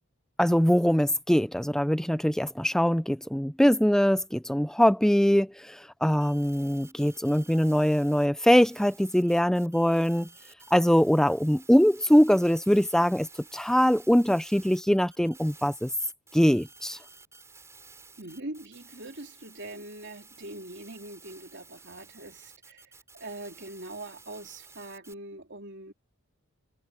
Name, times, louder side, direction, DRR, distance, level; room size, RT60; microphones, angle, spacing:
voice 1, 0.4-10.3 10.7-15.9 16.3-17.0, equal, ahead, 0.5 m, -23 dB
sound 1, 6.1-8.3 8.6-25.1, right 4 dB, 15° right, 7.2 m, -53 dB
voice 2, 18.2-22.8 23.1-25.9, right 2 dB, 55° right, 3.5 m, -42 dB
head